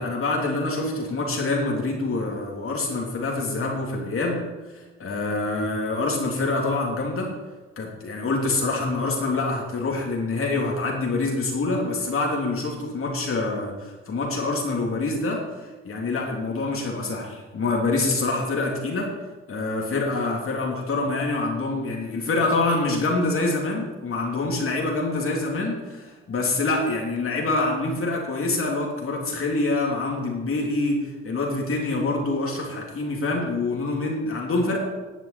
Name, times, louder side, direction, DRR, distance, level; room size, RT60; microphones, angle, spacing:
voice 1, 0.0-4.4 4.7-7.3 7.8-19.1 19.5-34.8, left 2 dB, 45° left, -1 dB, 3.0 m, -26 dB
11.0 x 7.5 x 8.5 m, 1.2 s
cardioid pair, 90°, 30 cm